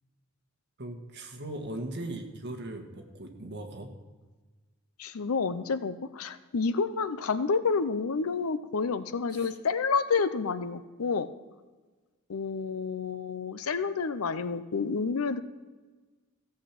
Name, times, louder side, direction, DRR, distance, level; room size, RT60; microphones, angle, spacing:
voice 1, 0.8-3.9 9.3-9.5, right 1 dB, 55° right, 4 dB, 1.5 m, -39 dB
voice 2, 5.0-11.3 12.3-15.4, left 5 dB, 90° left, 13 dB, 0.6 m, -29 dB
15.5 x 7.3 x 5.9 m, 1.3 s
head